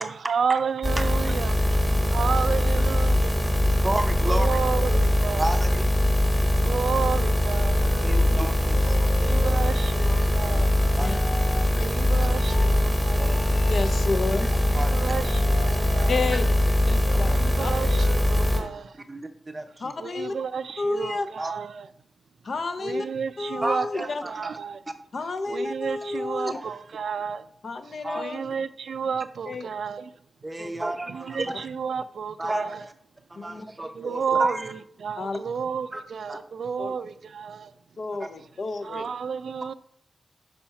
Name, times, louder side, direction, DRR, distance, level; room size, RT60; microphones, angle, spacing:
voice 1, 0.0-1.6 2.1-3.1 4.3-5.5 6.6-7.9 9.2-10.7 11.8-13.3 14.9-16.1 17.3-18.9 20.0-21.9 22.8-23.9 24.3-24.8 25.5-27.4 28.1-30.1 31.1-32.8 34.0-34.6 35.0-37.7 38.8-39.7, right 6 dB, 80° right, 0.3 m, -31 dB
sound 1, 0.8-18.6, left 1 dB, 5° left, 1.2 m, -22 dB
voice 2, 3.8-4.7 5.4-5.9 8.0-9.5 10.5-10.6 11.0-11.2 12.2-12.3 13.2-13.6 14.7-15.3 15.7-16.4 17.3-17.4 19.1-20.0 21.4-21.5 23.6-24.6 24.9-25.0 26.5-26.6 28.0-28.4 30.4-31.7 32.4-32.9 33.3-34.7 35.9-36.0 36.3-36.4 38.2-38.3, right 1 dB, 20° right, 0.6 m, -32 dB
Wind instrument woodwind instrument, 6.9-12.7 13.1-18.8, left 2 dB, 90° left, 1.0 m, -41 dB
voice 3, 13.7-14.5 16.1-16.4 16.9-17.3 17.6-17.7 19.8-20.3 20.8-21.3 22.4-23.1 23.4-24.2 25.1-26.6 27.6-28.4 29.5-29.6 30.6-30.7 33.4-33.6 35.2-35.4 36.8-36.9 38.0-39.1, left 3 dB, 55° left, 0.6 m, -30 dB
5.5 x 4.3 x 5.7 m
wide cardioid pair, 160°, 0 cm